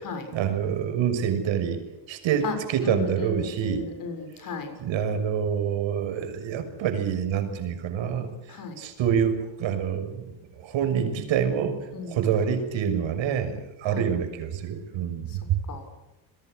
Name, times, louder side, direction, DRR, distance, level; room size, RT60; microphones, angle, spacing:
voice 1, 0.3-1.8 2.1-3.9 4.8-8.3 8.8-10.2 10.6-11.8 12.1-15.6, right 8 dB, 70° right, 7 dB, 6.3 m, -26 dB
voice 2, 2.8-4.7 8.5-8.8 11.9-12.2 13.9-14.0 15.3-15.4 15.7-16.0, left 5 dB, 45° left, 7 dB, 7.1 m, -35 dB
29.5 x 22.0 x 6.6 m, 1.0 s
cardioid pair, 155°, 48 cm